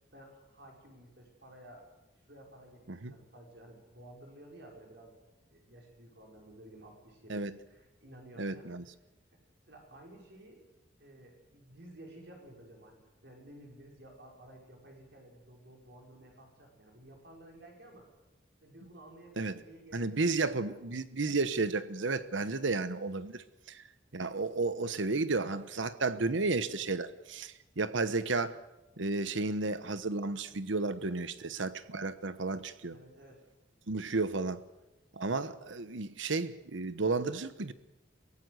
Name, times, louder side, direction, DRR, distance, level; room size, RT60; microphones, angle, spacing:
voice 1, 0.1-1.9 2.3-5.1 5.5-8.7 9.7-10.6 11.0-18.1 18.6-20.8 32.9-33.4, right 1 dB, 60° right, 5.4 m, -54 dB
voice 2, 8.4-8.8 19.4-19.5 19.9-23.8 24.1-28.6 29.0-33.0 33.9-34.6 35.2-37.7, right 3 dB, 75° right, 1.1 m, -32 dB
23.5 x 17.0 x 7.9 m
head